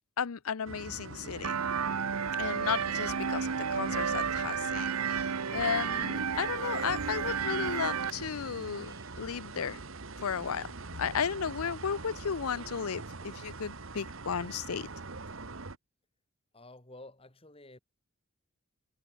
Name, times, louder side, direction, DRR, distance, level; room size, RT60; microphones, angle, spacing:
voice 1, 0.2-1.6 2.4-9.8 10.2-10.7 11.0-14.9, left 7 dB, 75° left, 0.6 m, -34 dB
sound 1, 0.6-15.8, right 3 dB, 60° right, 1.4 m, -43 dB
sound 2, 1.4-8.1, right 7 dB, 85° right, 0.8 m, -32 dB
Cat, 6.1-9.4, right 2 dB, 15° right, 2.3 m, -59 dB
voice 2, 16.5-17.8, left 2 dB, 25° left, 2.2 m, -51 dB
head